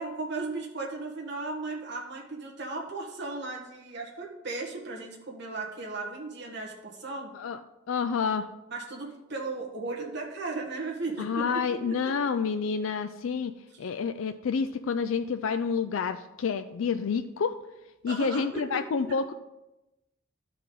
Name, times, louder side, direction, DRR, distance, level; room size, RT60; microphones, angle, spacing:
voice 1, 0.0-7.3 8.7-12.1 18.1-19.2, right 3 dB, 55° right, -1 dB, 1.6 m, -36 dB
voice 2, 7.9-8.5 11.2-13.5 13.8-17.6 18.0-19.3, left 6 dB, 70° left, 9 dB, 0.4 m, -29 dB
12.0 x 4.7 x 3.9 m, 0.95 s
head